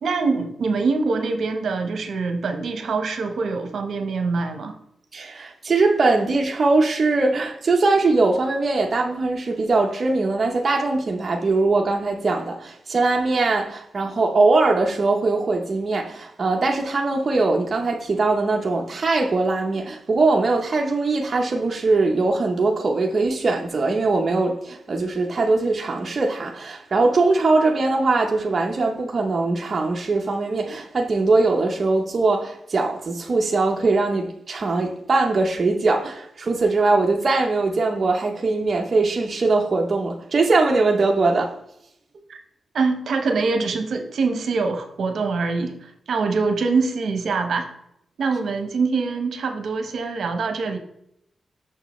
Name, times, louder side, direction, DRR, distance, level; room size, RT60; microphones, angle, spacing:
voice 1, 0.0-4.8 42.3-42.4 42.7-47.7 48.2-50.8, right 4 dB, 65° right, 0.8 m, -24 dB
voice 2, 5.1-41.5, right 3 dB, 35° right, 0.6 m, -21 dB
6.5 x 6.3 x 3.0 m
wide cardioid pair, 150°, 0 cm